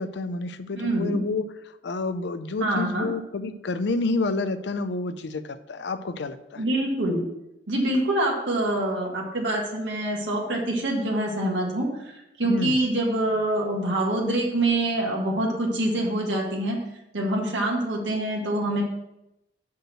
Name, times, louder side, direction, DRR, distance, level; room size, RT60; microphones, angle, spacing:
voice 1, 0.0-1.4 1.8-6.6 12.4-12.8, left 3 dB, 70° left, 12 dB, 0.5 m, -29 dB
voice 2, 0.7-1.2 2.6-3.1 6.6-7.2 7.7-12.1 12.4-16.8 17.1-18.8, right 1 dB, 85° right, -2 dB, 1.7 m, -25 dB
6.3 x 5.3 x 6.1 m, 0.90 s
head